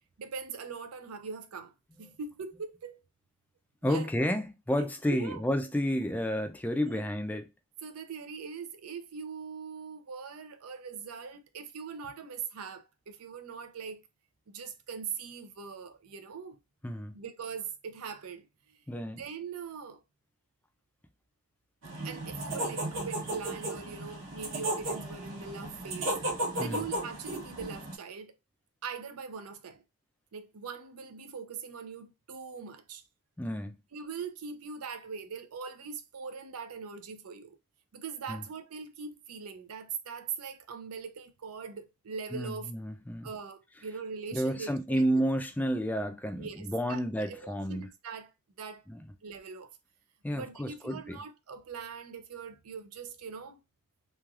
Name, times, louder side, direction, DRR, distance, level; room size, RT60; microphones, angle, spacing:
voice 1, 0.2-1.7 2.0-3.0 3.8-4.1 4.8-5.4 6.8-7.0 7.8-14.0 14.5-16.6 17.1-18.8 19.1-20.0 22.0-26.2 26.5-28.4 28.8-29.8 30.3-33.0 33.9-37.6 37.9-42.7 43.2-45.2 46.4-48.3 48.6-48.8 49.2-49.7 50.3-53.6, right 5 dB, 90° right, 0.5 m, -41 dB
voice 2, 3.8-7.4 16.8-17.1 18.9-19.2 26.6-26.9 33.4-33.8 38.3-38.4 42.3-43.3 44.3-47.9 48.9-49.0 50.2-51.2, equal, 5° left, 0.3 m, -31 dB
sound 1, 21.8-27.9, right 1 dB, 60° right, 1.1 m, -35 dB
3.1 x 2.3 x 2.3 m
head